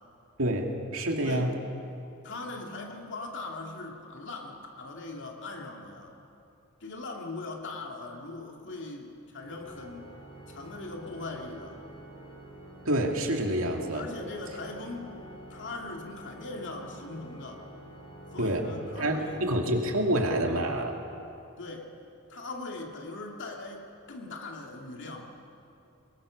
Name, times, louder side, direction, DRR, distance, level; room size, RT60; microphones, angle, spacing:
voice 1, 0.4-1.6 12.8-14.0 18.4-18.7 19.0-21.0, right 1 dB, 70° right, 2 dB, 2.5 m, -27 dB
voice 2, 1.2-1.5 2.2-6.2 6.8-10.1 10.5-11.8 13.9-15.1 15.5-17.7 18.3-19.4 21.6-21.9 22.3-25.3, left 2 dB, 60° left, 1 dB, 2.7 m, -40 dB
Organ, 9.4-20.1, right 1 dB, 25° left, 4.6 m, -48 dB
24.0 x 21.5 x 6.6 m, 2.8 s
head